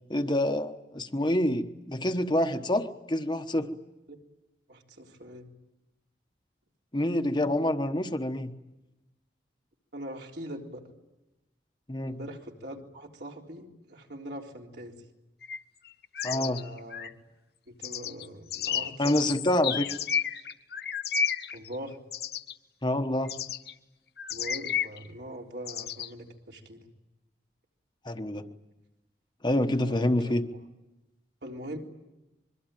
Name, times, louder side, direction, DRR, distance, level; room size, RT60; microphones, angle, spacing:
voice 1, 0.1-3.7 6.9-8.5 11.9-12.2 16.2-16.7 19.0-20.0 22.8-23.4 28.0-28.4 29.4-30.4, left 1 dB, 25° left, 6 dB, 1.2 m, -27 dB
voice 2, 4.7-5.5 9.9-10.8 12.0-15.0 16.2-17.1 17.7-19.2 21.5-22.0 24.3-26.9 29.8-30.3 31.4-31.8, equal, 70° right, 0 dB, 3.7 m, -42 dB
sound 1, 15.4-15.6 15.9-17.1 17.8-22.5 23.3-23.7 24.2-25.0 25.7-26.1, left 8 dB, 60° left, 1.0 m, -32 dB
25.0 x 23.0 x 9.1 m, 1.0 s
head